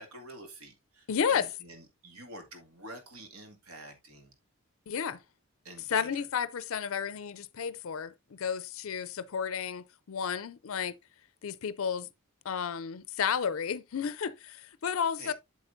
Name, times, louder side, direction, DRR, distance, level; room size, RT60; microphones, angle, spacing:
voice 1, 0.0-4.3 5.6-6.3 15.2-15.3, right 1 dB, 75° right, 2.2 m, -48 dB
voice 2, 1.1-1.5 4.9-5.2 5.9-10.9 11.4-12.1 12.4-15.3, left 7 dB, 70° left, 0.5 m, -32 dB
8.0 x 7.5 x 2.6 m
head